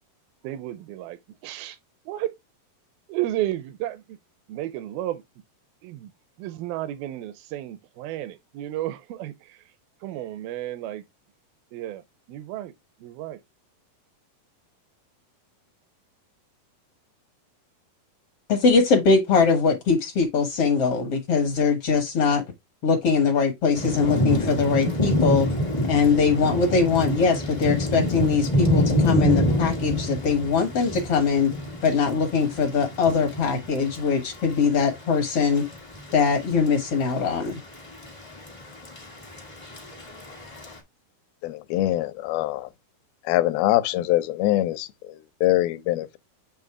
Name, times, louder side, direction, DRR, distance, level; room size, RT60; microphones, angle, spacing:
voice 1, 0.4-1.8 2.1-2.4 3.1-4.2 4.5-5.2 5.8-6.1 6.4-9.7 10.0-11.0 11.7-12.7 13.0-13.4, right 14 dB, 85° right, 2.4 m, -32 dB
voice 2, 18.5-22.4 22.8-25.5 25.9-31.5 31.8-35.6 36.1-37.6, left 5 dB, 65° left, 1.5 m, -22 dB
Thunder / Rain, 23.7-40.8, equal, 30° left, 0.5 m, -27 dB
voice 3, 41.4-42.7 43.3-46.2, left 15 dB, 85° left, 2.4 m, -24 dB
7.7 x 2.7 x 4.7 m
omnidirectional pair, 4.2 m